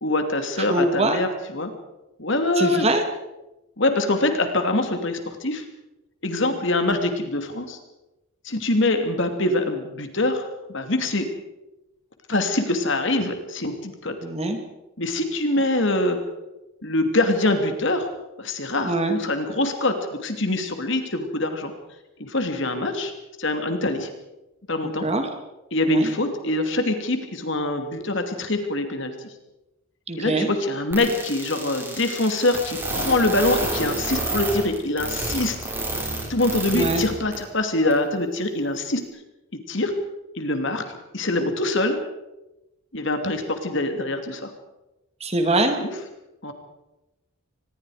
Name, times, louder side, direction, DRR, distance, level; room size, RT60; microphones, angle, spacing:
voice 1, 0.0-1.7 2.2-2.9 3.8-5.6 6.2-7.8 8.4-11.3 12.3-14.2 15.0-16.2 16.8-18.1 18.4-21.7 22.2-23.1 23.4-24.1 24.7-25.1 25.7-29.1 30.2-35.5 36.3-39.0 39.7-39.9 40.4-40.8 41.1-42.0 42.9-44.5 45.8-45.9 46.4-46.5, left 2 dB, 55° left, 6 dB, 2.7 m, -24 dB
voice 2, 0.6-1.2 2.6-3.0 14.2-14.6 18.8-19.2 24.8-25.3 25.9-26.1 30.1-30.5 36.7-37.0 45.2-45.8, right 2 dB, 30° right, 6 dB, 2.4 m, -23 dB
sound 1, 30.9-37.0 37.3-37.4 37.9-38.0, right 2 dB, 10° right, 5.7 m, -28 dB
25.0 x 20.5 x 5.0 m, 0.97 s
head